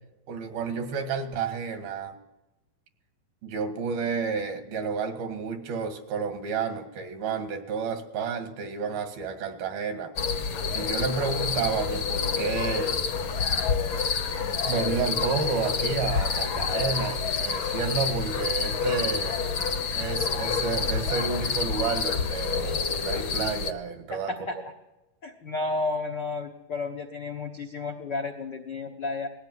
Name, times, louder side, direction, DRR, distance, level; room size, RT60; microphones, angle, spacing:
voice 1, 0.3-2.2 3.4-10.1 10.7-13.0 14.7-19.4 19.9-24.3, right 5 dB, 85° right, 7 dB, 3.8 m, -30 dB
sound 1, 10.2-23.7, left 5 dB, 65° left, 1.2 m, -28 dB
voice 2, 24.1-24.6 25.2-29.3, left 3 dB, 85° left, 3 dB, 0.9 m, -32 dB
19.5 x 16.0 x 9.5 m, 0.97 s
omnidirectional pair, 4.1 m